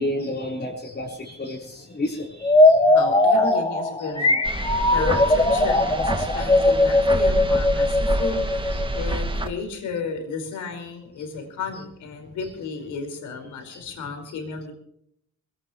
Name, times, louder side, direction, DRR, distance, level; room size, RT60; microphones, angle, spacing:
voice 1, 0.0-2.8 13.7-13.8, left 1 dB, 35° left, 4.1 m, -31 dB
sound 1, 2.4-9.1, left 2 dB, 20° left, 2.8 m, -19 dB
voice 2, 2.8-4.4 4.8-14.7, left 4 dB, 80° left, 4.9 m, -33 dB
sound 2, 4.4-9.5, right 2 dB, 15° right, 2.1 m, -28 dB
22.5 x 17.5 x 3.1 m
cardioid pair, 90°, 30 cm